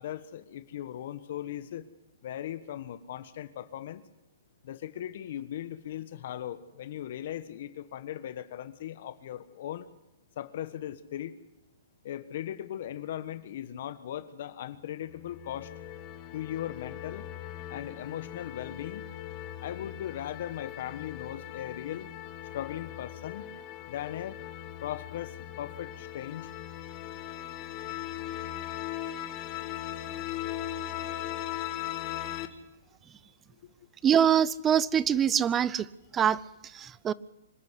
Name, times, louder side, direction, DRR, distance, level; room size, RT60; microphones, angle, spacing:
voice 1, 0.0-1.9 2.2-4.0 4.6-9.9 10.4-11.3 12.0-15.7 16.3-17.3 17.7-19.0 19.6-22.1 22.5-23.4 23.9-24.4 24.8-26.5 33.6-33.7, left 11 dB, 55° left, 13 dB, 1.4 m, -38 dB
sound 1, 15.1-32.5, left 12 dB, 30° left, 1.7 m, -39 dB
voice 2, 34.0-35.9 36.1-37.1, right 8 dB, 15° right, 21 dB, 0.7 m, -24 dB
26.0 x 12.0 x 8.3 m, 0.94 s
hypercardioid pair, 145°, 0 cm